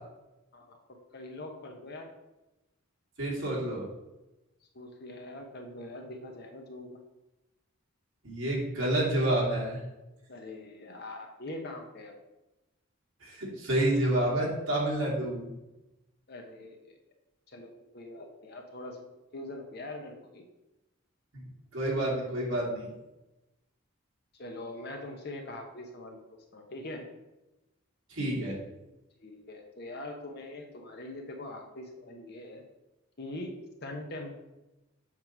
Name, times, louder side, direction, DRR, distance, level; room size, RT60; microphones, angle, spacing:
voice 1, 1.1-2.1 4.7-6.9 10.3-12.1 16.3-17.0 17.5-19.0 19.3-20.5 24.4-26.2 26.5-27.0 29.2-32.6 33.2-33.5 33.8-34.3, left 2 dB, 50° left, 3 dB, 1.0 m, -42 dB
voice 2, 3.2-3.8 8.2-9.8 13.2-15.5 21.3-21.5 21.7-22.9 28.1-28.6, right 1 dB, 65° right, -5 dB, 2.7 m, -29 dB
7.4 x 3.2 x 5.9 m, 0.99 s
head